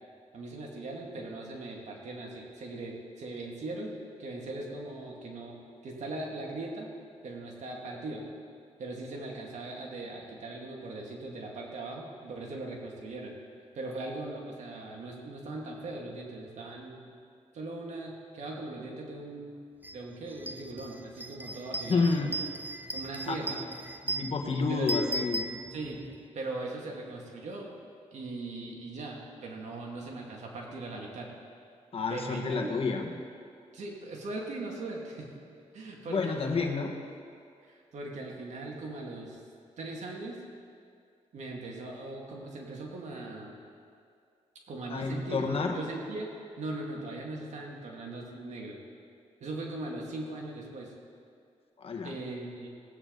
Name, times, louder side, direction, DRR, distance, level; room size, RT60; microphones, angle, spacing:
voice 1, 0.3-3.9 4.2-6.9 7.2-8.3 8.8-13.3 13.7-17.1 17.5-19.5 19.9-22.3 22.9-23.6 24.5-24.9 25.7-26.1 26.3-27.7 28.1-31.3 32.1-32.7 33.7-35.3 35.7-36.7 37.6-39.4 39.8-40.4 41.3-43.6 44.7-46.3 46.6-48.8 49.4-50.9 52.0-52.7, right 2 dB, 75° right, -1 dB, 2.3 m, -39 dB
sound 1, 19.8-20.0 20.3-26.2, right 2 dB, 15° right, 0.7 m, -37 dB
voice 2, 21.9-22.4 23.3-23.6 24.0-25.5 31.9-33.1 36.1-36.9 44.9-45.8 51.8-52.1, left 4 dB, 50° left, 3 dB, 1.6 m, -29 dB
19.0 x 9.0 x 4.0 m, 2.3 s
cardioid pair, 70°, 12 cm